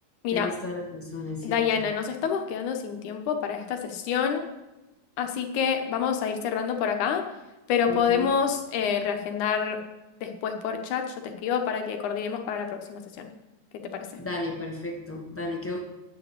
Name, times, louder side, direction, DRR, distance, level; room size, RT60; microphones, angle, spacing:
voice 1, 0.3-1.9 7.9-8.4 14.1-15.8, left 2 dB, 5° left, 0 dB, 1.8 m, -34 dB
voice 2, 1.4-4.5 5.2-7.2 7.7-9.8 10.2-13.3 13.8-14.1, left 7 dB, 80° left, 5 dB, 2.7 m, -27 dB
9.5 x 8.6 x 9.1 m, 1.0 s
omnidirectional pair, 3.5 m